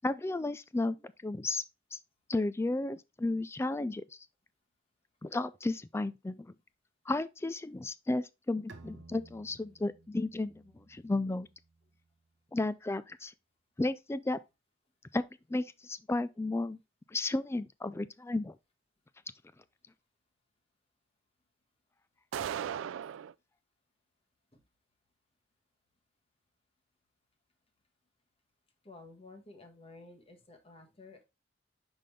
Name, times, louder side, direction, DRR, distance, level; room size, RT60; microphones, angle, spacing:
voice 1, 0.0-1.6 1.9-2.0 2.3-4.0 5.2-6.5 7.1-11.5 12.5-13.3 13.8-14.4 15.1-16.8 17.1-18.6, left 2 dB, 15° left, 0.3 m, -33 dB
Bowed string instrument, 8.7-12.2, right 3 dB, 60° right, 0.8 m, -56 dB
sound 1, 22.3-23.3, right 9 dB, 80° right, 0.3 m, -36 dB
voice 2, 28.8-31.2, left 3 dB, 30° left, 1.3 m, -53 dB
5.8 x 5.3 x 3.2 m
head